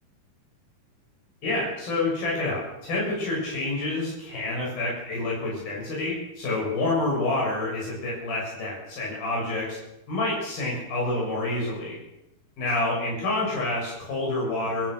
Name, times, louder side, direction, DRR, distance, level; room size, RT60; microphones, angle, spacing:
voice 1, 1.4-9.8 10.1-12.0 12.6-14.9, left 2 dB, 70° left, -4 dB, 8.6 m, -28 dB
28.0 x 16.0 x 6.5 m, 0.87 s
omnidirectional pair, 4.4 m